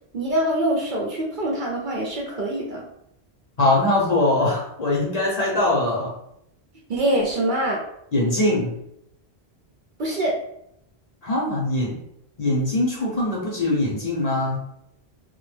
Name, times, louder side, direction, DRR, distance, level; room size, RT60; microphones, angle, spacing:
voice 1, 0.1-2.9 6.9-7.8 10.0-10.3, right 1 dB, 60° right, -2 dB, 0.6 m, -24 dB
voice 2, 3.6-6.1 8.1-8.7 11.2-11.9 12.4-14.6, left 2 dB, 45° left, -4 dB, 0.7 m, -22 dB
2.1 x 2.1 x 3.1 m, 0.75 s
omnidirectional pair, 1.1 m